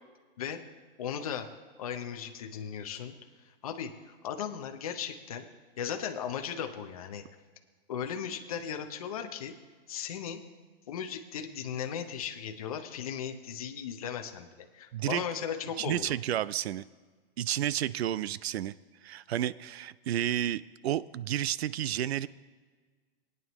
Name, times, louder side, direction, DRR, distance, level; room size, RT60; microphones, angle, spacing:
voice 1, 1.0-1.5 1.8-3.1 3.5-5.4 5.8-7.2 7.9-9.5 9.9-10.4 10.9-14.5 14.7-16.1, left 8 dB, 35° left, 5 dB, 0.8 m, -37 dB
voice 2, 14.9-15.2 15.8-16.8 17.4-18.7 19.0-22.3, right 11 dB, 85° right, 19 dB, 0.5 m, -31 dB
25.0 x 9.3 x 3.1 m, 1.5 s
hypercardioid pair, 180°, 31 cm